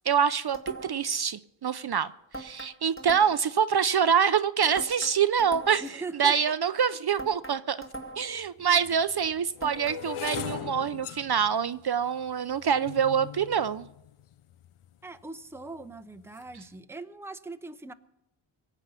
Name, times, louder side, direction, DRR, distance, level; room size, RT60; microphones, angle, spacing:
voice 1, 0.1-5.8 6.2-7.8 8.2-13.9, right 7 dB, 50° right, 0.5 m, -25 dB
sound 1, 0.5-1.1 2.3-3.6 4.8-6.0 7.2-8.4 9.6-10.8, right 2 dB, 25° left, 2.1 m, -41 dB
voice 2, 5.8-6.4 15.0-17.9, right 3 dB, 5° right, 0.7 m, -40 dB
sound 2, 7.9-8.0 8.7-14.9 15.6-15.9 16.2-16.6, left 11 dB, 85° left, 0.5 m, -41 dB
23.5 x 8.1 x 5.6 m
wide cardioid pair, 80°, 49 cm